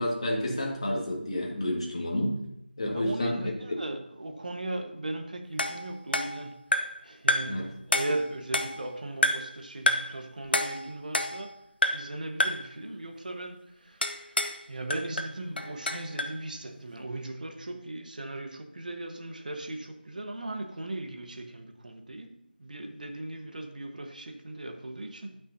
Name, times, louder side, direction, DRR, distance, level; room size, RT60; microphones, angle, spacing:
voice 1, 0.0-2.4 2.8-3.6 7.5-7.7, left 1 dB, 35° left, 1.8 m, -29 dB
voice 2, 2.9-11.6 11.9-25.4, right 2 dB, 50° right, 1.2 m, -38 dB
sound 1, 5.6-7.0 7.3-7.6 7.9-8.9 9.2-9.6 9.9-10.2 10.5-11.5 11.8-12.1 12.4-12.7 14.0-14.6 14.9-16.4, left 1 dB, 65° left, 0.8 m, -28 dB
17.0 x 6.2 x 2.7 m
figure-of-eight pair, 175°, 6 cm